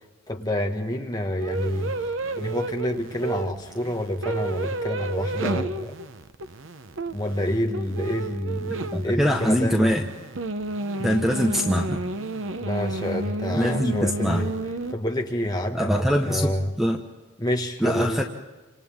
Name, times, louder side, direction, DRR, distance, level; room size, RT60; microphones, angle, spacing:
voice 1, 0.3-1.9 2.4-6.0 7.1-9.9 12.6-14.5 14.9-16.7 17.4-18.2, left 1 dB, 20° left, 2 dB, 1.8 m, -28 dB
sound 1, 1.4-14.9, right 2 dB, 70° right, 0.9 m, -32 dB
voice 2, 8.9-10.0 11.0-12.0 13.5-14.4 15.7-17.0 17.8-18.2, equal, ahead, 2 dB, 1.2 m, -23 dB
29.5 x 26.5 x 3.7 m, 1.2 s
head